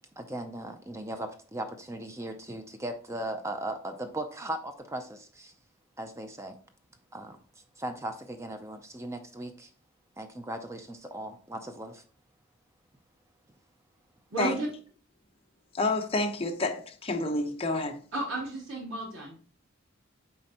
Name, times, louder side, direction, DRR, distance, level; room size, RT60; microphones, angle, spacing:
voice 1, 0.2-5.5 6.0-6.6 7.1-7.4 7.8-9.7 10.2-12.0, right 1 dB, 15° right, 0.5 m, -38 dB
voice 2, 14.3-14.7 18.1-19.4, right 2 dB, 90° right, 3.0 m, -33 dB
voice 3, 15.7-18.0, left 2 dB, 30° left, 0.8 m, -29 dB
7.5 x 4.3 x 2.9 m
head